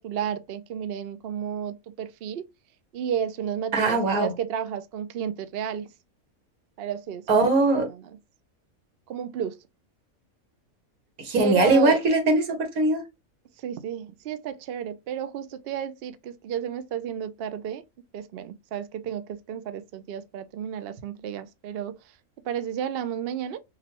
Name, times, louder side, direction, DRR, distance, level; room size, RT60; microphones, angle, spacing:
voice 1, 0.0-2.5 2.9-5.9 6.8-7.4 9.1-9.6 11.4-12.0 13.6-17.8 18.1-22.0 22.4-23.6, right 8 dB, 65° right, 0.6 m, -32 dB
voice 2, 3.7-4.3 7.3-7.9 11.2-13.0, right 2 dB, 80° right, 1.8 m, -21 dB
5.9 x 2.2 x 2.9 m
omnidirectional pair, 1.5 m